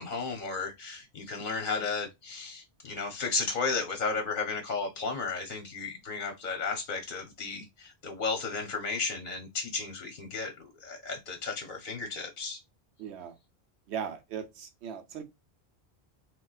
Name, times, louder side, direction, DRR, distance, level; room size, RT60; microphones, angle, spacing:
voice 1, 0.0-12.6, left 4 dB, 55° left, 0.7 m, -34 dB
voice 2, 13.0-13.4 13.9-15.2, right 7 dB, 80° right, 0.9 m, -38 dB
3.6 x 2.2 x 2.3 m
omnidirectional pair, 1.1 m